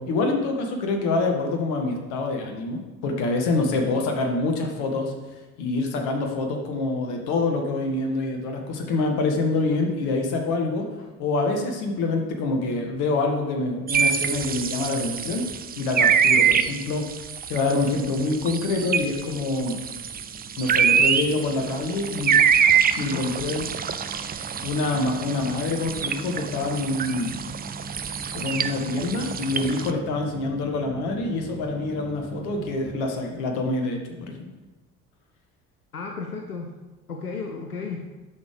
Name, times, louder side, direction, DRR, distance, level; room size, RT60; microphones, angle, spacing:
voice 1, 0.0-5.1 5.6-10.9 11.2-15.5 15.8-17.0 17.5-19.8 20.6-22.3 23.0-23.6 24.6-27.4 28.3-34.5, left 3 dB, 60° left, 3 dB, 1.8 m, -26 dB
sound 1, 13.9-29.9, right 7 dB, 20° right, 0.5 m, -25 dB
sound 2, 19.2-33.0, right 3 dB, 35° right, 3.4 m, -41 dB
voice 2, 35.9-36.8 37.1-38.1, left 4 dB, 90° left, 2 dB, 0.7 m, -34 dB
9.5 x 6.5 x 5.2 m, 1.2 s
figure-of-eight pair, 55°, 44 cm